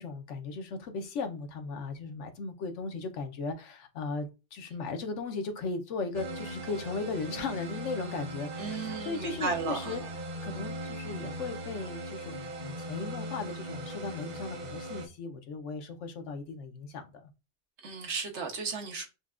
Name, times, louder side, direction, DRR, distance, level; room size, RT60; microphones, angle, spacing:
voice 1, 0.0-10.0 10.4-17.3, left 4 dB, 80° left, 1.0 m, -37 dB
sound 1, 6.1-15.1, right 1 dB, 50° right, 0.5 m, -39 dB
voice 2, 8.6-10.1 17.8-19.1, right 4 dB, 75° right, 1.2 m, -34 dB
5.6 x 2.2 x 2.4 m
omnidirectional pair, 1.2 m